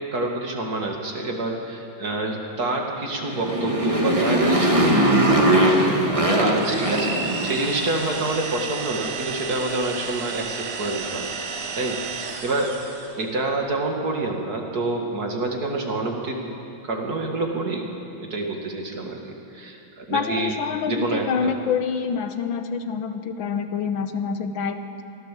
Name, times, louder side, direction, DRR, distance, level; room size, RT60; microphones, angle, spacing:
voice 1, 0.1-7.1 7.4-12.7 13.2-16.4 16.8-17.9 18.2-20.5 20.9-21.5, right 2 dB, 50° right, 1 dB, 2.5 m, -28 dB
Motorcycle, 3.2-7.8, right 1 dB, 15° right, 1.8 m, -20 dB
sound 1, 6.5-13.2, right 5 dB, 85° right, 2.3 m, -32 dB
voice 2, 20.1-25.0, left 6 dB, 80° left, 8 dB, 1.8 m, -26 dB
23.5 x 16.0 x 7.6 m, 2.7 s
omnidirectional pair, 2.2 m